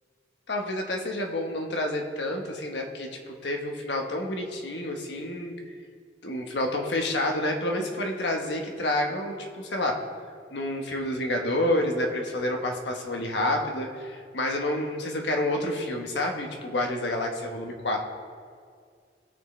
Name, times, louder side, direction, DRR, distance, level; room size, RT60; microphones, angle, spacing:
voice 1, 0.5-5.5 6.2-9.9 10.5-18.0, left 1 dB, 80° left, 2 dB, 1.3 m, -29 dB
17.5 x 6.2 x 3.3 m, 2.1 s
head